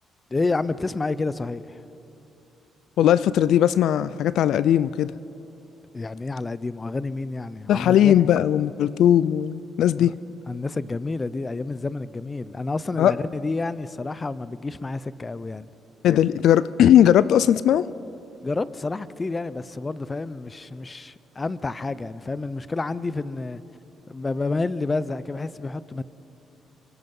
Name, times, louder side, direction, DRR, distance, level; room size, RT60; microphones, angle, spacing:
voice 1, 0.3-1.8 5.9-8.3 10.0-10.1 10.5-15.7 18.4-23.6 24.1-26.0, left 3 dB, 25° left, 0.7 m, -29 dB
voice 2, 3.0-5.1 7.7-10.2 13.0-13.1 16.0-17.8, left 10 dB, 75° left, 0.4 m, -18 dB
25.5 x 24.0 x 5.5 m
cardioid pair, 90°, 0 cm